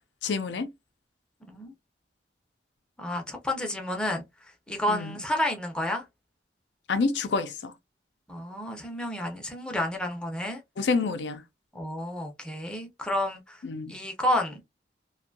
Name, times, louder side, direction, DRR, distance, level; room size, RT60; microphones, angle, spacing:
voice 1, 0.2-0.7 4.9-5.2 6.9-7.7 10.8-11.4 13.6-14.0, left 4 dB, 70° left, 0.5 m, -28 dB
voice 2, 3.0-4.2 4.7-6.0 8.3-10.6 11.7-13.6 13.9-14.6, left 1 dB, 5° left, 0.5 m, -30 dB
2.6 x 2.2 x 2.5 m
head